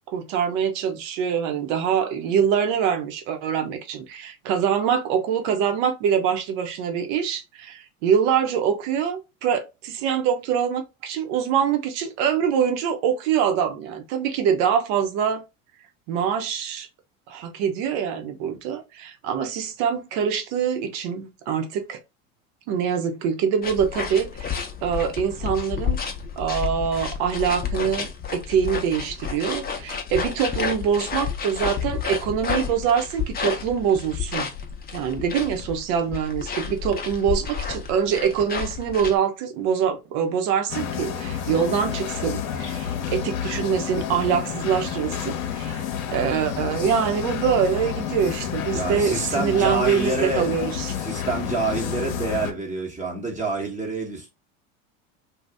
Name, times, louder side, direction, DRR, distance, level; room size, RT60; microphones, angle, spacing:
voice 1, 0.1-15.4 16.1-16.9 17.3-22.0 22.7-26.0 26.4-34.5 34.9-45.8 46.1-50.9, right 7 dB, 65° right, 1.0 m, -24 dB
sound 1, 23.6-39.2, left 6 dB, 25° left, 0.7 m, -31 dB
sound 2, 40.7-52.5, left 8 dB, 75° left, 0.8 m, -30 dB
voice 2, 48.7-50.5 51.0-54.3, right 3 dB, 20° right, 1.1 m, -27 dB
2.7 x 2.4 x 3.4 m
hypercardioid pair, 85°, 41 cm